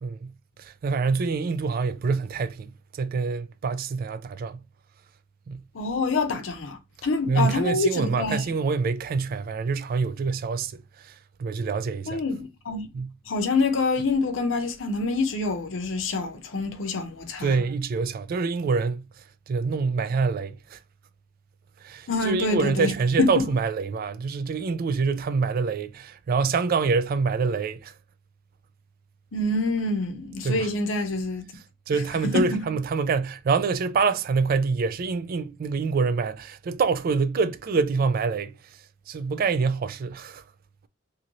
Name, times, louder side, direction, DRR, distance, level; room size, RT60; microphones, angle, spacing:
voice 1, 0.0-4.6 5.5-5.6 7.3-11.1 11.4-12.2 12.9-13.1 17.4-19.1 19.5-20.8 21.8-27.9 30.4-30.7 31.9-38.5 39.1-40.4, right 4 dB, 50° right, 0.3 m, -26 dB
voice 2, 5.7-8.4 12.1-12.8 13.3-17.6 22.1-23.5 29.3-31.4 31.9-32.6, left 3 dB, 75° left, 0.6 m, -26 dB
2.7 x 2.6 x 3.0 m
head